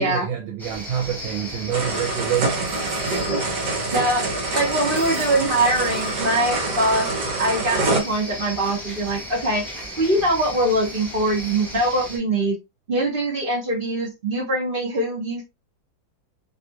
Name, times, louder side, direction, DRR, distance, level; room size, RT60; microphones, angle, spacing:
voice 1, 0.0-2.9, right 8 dB, 80° right, 1.5 m, -27 dB
sound 1, 0.6-12.2, equal, ahead, 0.7 m, -35 dB
sound 2, 1.7-8.0, right 2 dB, 65° right, 1.5 m, -26 dB
voice 2, 3.6-4.2 4.5-7.1 7.4-9.6 10.0-12.6 12.9-15.5, right 1 dB, 35° right, 0.9 m, -23 dB
3.3 x 2.5 x 2.7 m
omnidirectional pair, 2.1 m